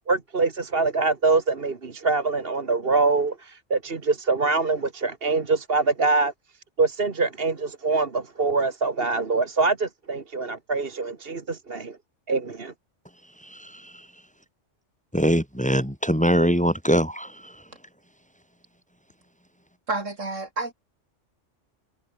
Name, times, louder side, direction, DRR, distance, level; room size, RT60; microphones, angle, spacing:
voice 1, 0.1-6.3 6.8-12.0 12.3-12.7, right 3 dB, 50° right, 1.9 m, -24 dB
voice 2, 15.1-17.3, equal, 5° left, 2.5 m, -21 dB
voice 3, 19.9-20.7, right 3 dB, 90° right, 4.1 m, -29 dB
omnidirectional pair, 1.3 m